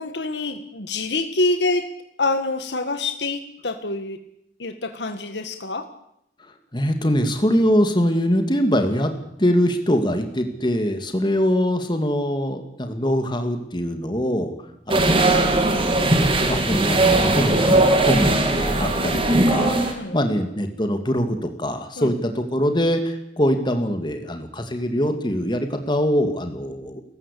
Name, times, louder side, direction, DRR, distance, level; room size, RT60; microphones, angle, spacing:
voice 1, 0.0-1.9 2.2-4.2 4.6-5.9 19.9-20.2 22.0-22.1, left 2 dB, 70° left, 8 dB, 1.6 m, -26 dB
voice 2, 6.7-9.1 9.4-14.5 14.9-27.0, equal, 25° left, 6 dB, 2.2 m, -23 dB
sound 1, 14.9-19.9, right 2 dB, 30° right, 3.1 m, -19 dB
30.0 x 15.0 x 8.5 m, 0.79 s
head